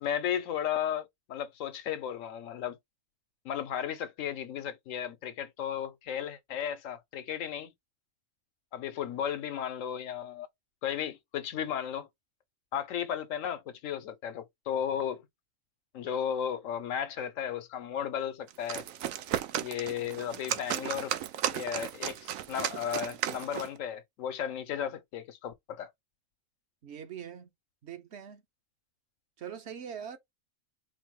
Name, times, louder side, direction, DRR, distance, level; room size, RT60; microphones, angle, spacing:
voice 1, 0.0-2.8 3.4-7.7 8.7-10.5 10.8-12.1 12.7-15.3 15.9-18.8 19.6-21.1 21.5-25.9, left 9 dB, 75° left, 1.1 m, -34 dB
sound 1, 18.5-23.8, right 11 dB, 85° right, 1.0 m, -35 dB
voice 2, 26.8-27.5 27.8-28.4 29.4-30.2, right 8 dB, 60° right, 1.0 m, -42 dB
4.3 x 2.0 x 4.6 m
omnidirectional pair, 1.4 m